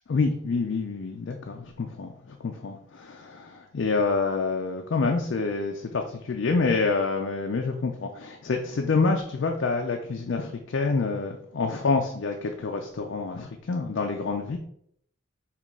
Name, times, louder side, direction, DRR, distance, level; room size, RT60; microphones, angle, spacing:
voice 1, 0.1-14.6, left 4 dB, 60° left, 3 dB, 0.4 m, -27 dB
5.7 x 2.4 x 3.6 m, 0.69 s
head